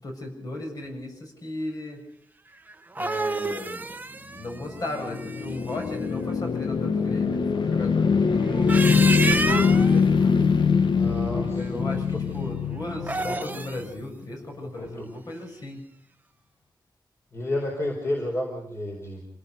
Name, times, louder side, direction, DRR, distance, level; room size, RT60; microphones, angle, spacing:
voice 1, 0.0-2.0 3.0-3.9 4.3-10.5 11.3-15.8, left 1 dB, 50° left, 2 dB, 7.0 m, -36 dB
sound 1, 2.7-5.8 8.5-10.0 12.9-13.8, right 3 dB, 20° right, 1.0 m, -29 dB
sound 2, 4.5-13.8, left 5 dB, 75° left, 1.4 m, -23 dB
voice 2, 10.9-12.4 14.6-15.1 17.3-19.2, left 1 dB, 35° left, 0 dB, 4.5 m, -31 dB
27.5 x 18.5 x 5.3 m, 0.65 s
wide cardioid pair, 170°, 8 cm